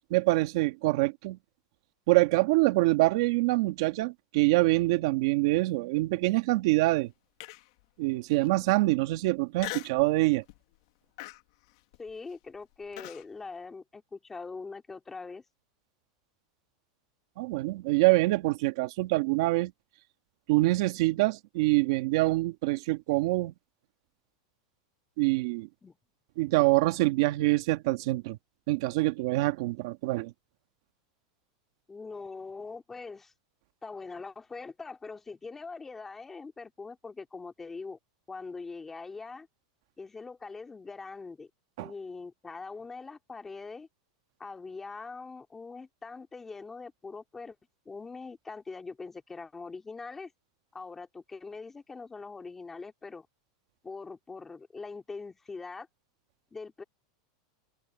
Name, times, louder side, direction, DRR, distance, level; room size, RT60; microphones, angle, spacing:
voice 1, 0.1-1.4 2.1-7.1 8.0-10.4 17.4-19.7 20.5-23.5 25.2-25.7 26.4-28.4 28.7-30.3 41.8-41.9, right 20 dB, 60° right, 1.5 m, -25 dB
Human voice, 7.4-7.8 8.4-8.5 9.6-10.1 10.5-10.8 11.2-13.2, left 21 dB, 55° left, 1.3 m, -41 dB
voice 2, 12.0-15.4 25.8-26.0 31.9-33.3 33.8-38.0 38.3-39.5 40.0-41.5 41.8-43.9 44.4-47.6 47.9-50.3 50.7-53.3 53.8-55.9 56.5-56.8, left 4 dB, 10° left, 2.5 m, -42 dB
supercardioid pair, 165°, 3 cm